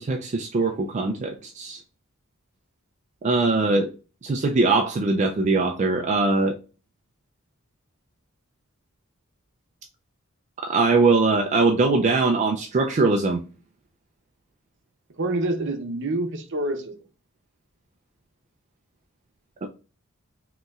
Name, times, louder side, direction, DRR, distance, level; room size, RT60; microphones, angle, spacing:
voice 1, 0.0-1.8 3.2-3.9 4.2-6.6 10.6-13.4 19.6-19.7, right 3 dB, 35° right, 0.3 m, -21 dB
voice 2, 15.2-17.0, right 2 dB, 60° right, 0.7 m, -27 dB
5.2 x 2.9 x 2.3 m
head